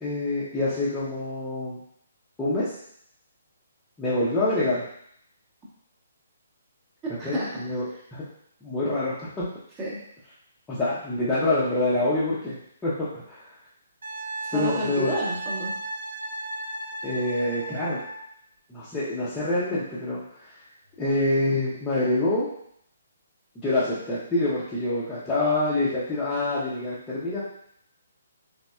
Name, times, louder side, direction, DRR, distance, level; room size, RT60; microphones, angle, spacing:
voice 1, 0.0-1.8 2.4-2.7 4.0-4.8 7.2-7.8 8.1-8.2 8.6-9.5 10.7-13.4 14.5-15.1 17.0-18.0 18.7-20.2 21.0-22.5 23.6-27.4, left 2 dB, 10° left, -12 dB, 0.8 m, -26 dB
voice 2, 7.2-7.6 9.8-10.0 14.4-15.7, right 1 dB, 15° right, -7 dB, 1.1 m, -30 dB
Wind instrument woodwind instrument, 14.0-18.3 20.9-21.1, right 1 dB, 60° right, 0.8 m, -35 dB
4.0 x 3.4 x 2.3 m, 0.70 s
figure-of-eight pair, 135°, 0 cm